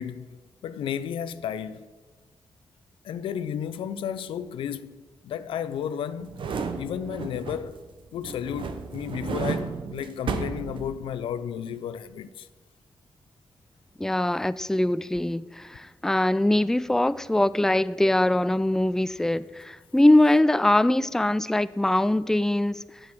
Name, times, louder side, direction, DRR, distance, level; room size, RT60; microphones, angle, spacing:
voice 1, 0.0-1.9 3.0-6.5 6.8-7.8 8.1-12.5, left 9 dB, 90° left, 0.4 m, -33 dB
sound 1, 6.2-7.9 8.2-11.3 11.7-11.8, right 5 dB, 75° right, 0.9 m, -33 dB
voice 2, 14.0-22.8, left 1 dB, 5° left, 0.3 m, -22 dB
7.8 x 7.3 x 6.1 m
cardioid pair, 55°, 9 cm